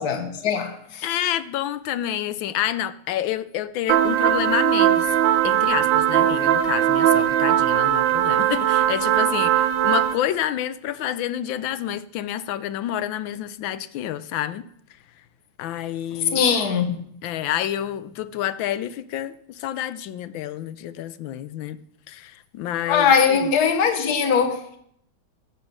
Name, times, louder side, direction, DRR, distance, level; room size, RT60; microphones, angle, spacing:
voice 1, 0.0-1.0 16.3-17.0 22.9-24.8, left 6 dB, 50° left, 1.7 m, -21 dB
voice 2, 1.0-5.2 5.4-14.6 15.6-16.4 17.2-21.8 22.1-23.5, left 11 dB, 75° left, 1.3 m, -28 dB
sound 1, 3.9-10.1, right 11 dB, 65° right, 1.4 m, -19 dB
14.0 x 8.5 x 6.1 m
omnidirectional pair, 2.3 m